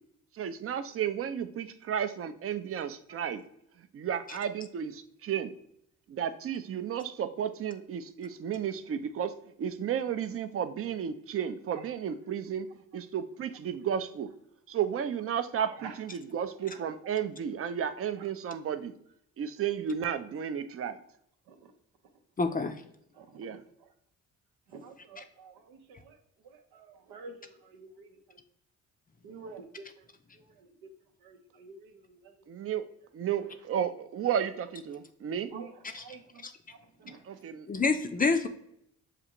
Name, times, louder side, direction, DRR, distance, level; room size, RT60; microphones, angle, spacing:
voice 1, 0.3-3.4 3.8-5.5 6.1-12.7 12.9-14.3 14.7-18.9 19.4-21.0 23.4-23.6 32.5-32.8 33.1-35.5 37.2-37.7, right 8 dB, 40° right, 12 dB, 0.4 m, -33 dB
voice 2, 22.4-22.8 25.2-25.3 35.9-36.0 36.4-36.5 37.7-38.5, left 4 dB, 25° left, 8 dB, 0.4 m, -27 dB
voice 3, 24.7-26.2 26.7-28.4 29.2-29.7 30.6-30.9 31.2-32.2 35.5-35.7 36.0-36.4 36.7-37.4, right 4 dB, 85° right, 5 dB, 0.7 m, -48 dB
6.6 x 2.4 x 2.9 m, 0.72 s
supercardioid pair, 55°, 37 cm